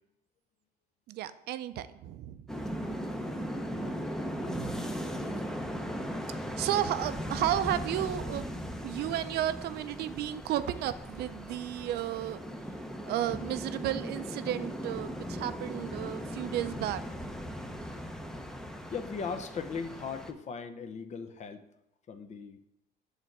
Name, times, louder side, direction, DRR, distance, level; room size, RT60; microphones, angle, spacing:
voice 1, 1.1-2.5 4.3-4.8 6.6-12.4 13.0-17.0, right 12 dB, 70° right, 13 dB, 0.5 m, -33 dB
sound 1, 2.5-20.3, equal, 5° left, 0.6 m, -38 dB
voice 2, 18.9-21.6 22.1-22.6, left 5 dB, 45° left, 10 dB, 0.6 m, -38 dB
6.7 x 3.3 x 6.0 m, 0.86 s
cardioid pair, 110°, 17 cm